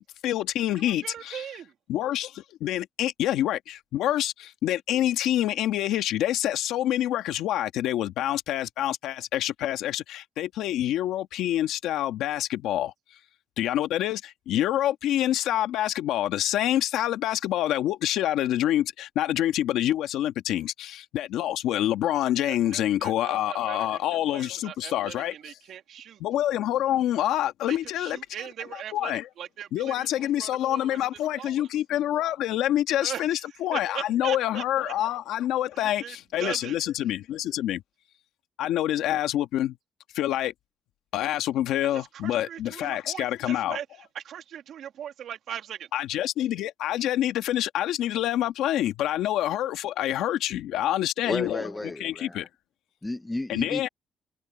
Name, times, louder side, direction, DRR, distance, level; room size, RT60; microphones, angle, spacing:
voice 1, 0.0-1.5 1.9-12.9 13.6-25.3 26.2-28.2 28.7-29.3 29.7-37.8 38.6-39.8 40.1-40.5 41.1-43.8 45.9-52.5 53.5-53.9, left 12 dB, 90° left, 1.6 m, -27 dB
voice 2, 0.7-1.7 22.4-23.9 24.3-26.2 27.7-31.0 31.3-31.7 33.0-33.4 33.7-34.9 35.8-36.8 41.9-43.9 44.1-45.9, right 10 dB, 70° right, 2.7 m, -40 dB
voice 3, 51.2-52.5 53.0-53.9, left 2 dB, 10° left, 0.6 m, -33 dB
cardioid pair, 90°, 0 cm